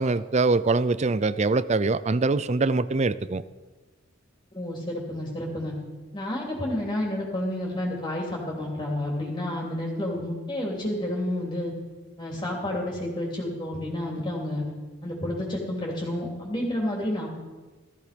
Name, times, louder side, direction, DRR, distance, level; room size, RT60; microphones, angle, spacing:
voice 1, 0.0-3.4, right 3 dB, 35° right, 0.5 m, -23 dB
voice 2, 4.5-5.7 6.1-11.7 12.2-14.6 15.0-17.3, left 1 dB, 25° left, 3.1 m, -30 dB
17.5 x 14.0 x 5.2 m
head